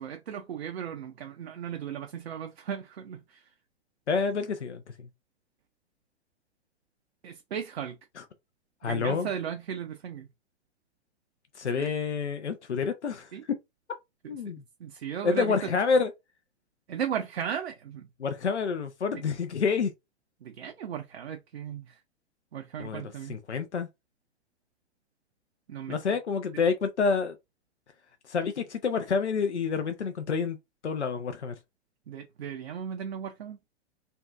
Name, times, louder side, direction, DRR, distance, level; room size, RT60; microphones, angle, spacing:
voice 1, 0.0-3.5 7.2-8.0 8.8-10.3 11.8-11.9 13.3-13.4 14.8-15.5 16.9-18.1 20.4-22.0 22.5-23.4 25.7-26.0 32.1-33.6, right 8 dB, 65° right, 0.5 m, -36 dB
voice 2, 4.1-5.1 8.2-8.3 8.8-9.3 11.5-13.6 14.3-14.6 15.2-16.1 18.2-19.9 22.8-23.9 25.9-27.4 28.2-30.6 30.8-31.5, left 5 dB, 85° left, 0.5 m, -28 dB
2.5 x 2.2 x 2.3 m
figure-of-eight pair, 105°, 34 cm